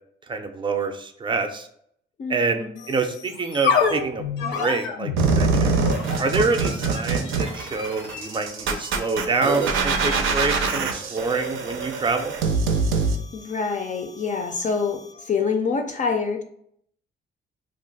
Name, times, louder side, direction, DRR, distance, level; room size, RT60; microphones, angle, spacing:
voice 1, 0.3-1.7 2.3-4.2 4.5-5.8 6.2-12.3, right 4 dB, 25° right, 7 dB, 0.4 m, -26 dB
voice 2, 2.2-2.8 13.3-16.4, left 5 dB, 40° left, 5 dB, 0.4 m, -26 dB
sound 1, 2.8-15.2, left 5 dB, 85° left, 0.6 m, -31 dB
sound 2, 5.2-13.2, right 4 dB, 85° right, 0.5 m, -24 dB
2.4 x 2.3 x 3.9 m, 0.67 s
cardioid pair, 90°, 20 cm